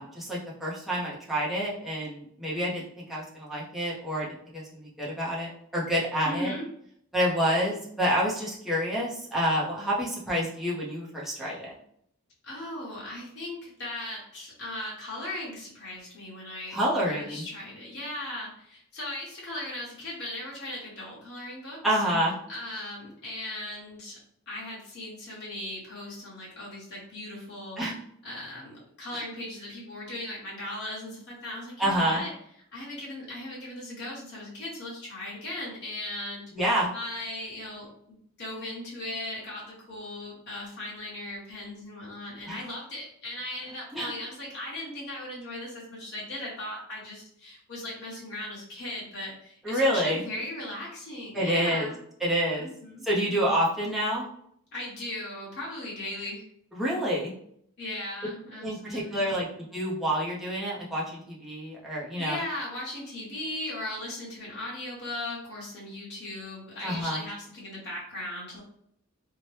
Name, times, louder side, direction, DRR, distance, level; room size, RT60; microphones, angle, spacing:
voice 1, 0.0-6.5 7.1-11.7 16.7-17.4 21.8-22.3 27.8-27.9 29.1-29.2 31.8-32.2 36.5-36.9 42.5-42.6 43.9-44.1 49.6-50.2 51.3-51.9 52.2-52.7 53.0-54.3 56.7-57.3 58.6-59.5 59.7-62.4 66.8-67.2, equal, ahead, -6 dB, 0.7 m, -28 dB
voice 2, 6.2-6.6 12.4-16.8 17.1-21.8 22.5-24.2 24.5-27.8 28.2-32.3 32.7-52.0 52.6-53.1 54.7-56.4 57.8-59.3 62.2-68.6, left 1 dB, 55° left, -6 dB, 1.1 m, -38 dB
2.8 x 2.1 x 3.2 m, 0.69 s
head